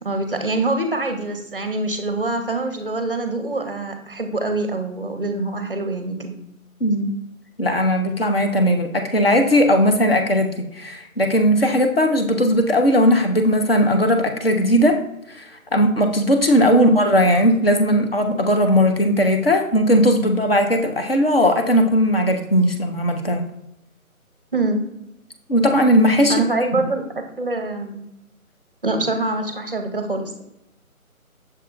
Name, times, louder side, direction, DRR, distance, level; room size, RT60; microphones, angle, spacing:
voice 1, 0.0-6.3 16.7-17.0 24.5-24.9 26.3-28.0 28.8-30.5, right 2 dB, 40° right, 6 dB, 0.6 m, -24 dB
voice 2, 6.8-7.1 7.6-15.0 15.3-15.5 15.7-23.5 25.5-26.4, equal, 45° left, 5 dB, 0.6 m, -18 dB
6.5 x 2.2 x 3.7 m, 0.83 s
figure-of-eight pair, 170°, 43 cm